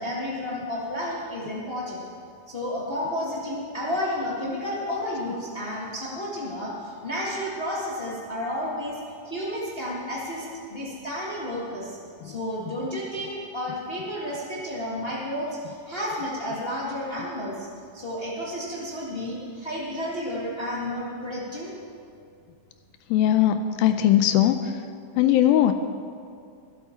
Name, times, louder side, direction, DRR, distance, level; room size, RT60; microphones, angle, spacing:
voice 1, 0.0-2.0 2.5-9.0 9.2-12.0 12.2-17.7 17.9-21.7, left 1 dB, 60° left, -5 dB, 0.6 m, -31 dB
voice 2, 23.1-24.8 25.2-25.7, left 11 dB, 80° left, 8 dB, 2.2 m, -20 dB
22.0 x 8.2 x 4.4 m, 2.3 s
omnidirectional pair, 4.4 m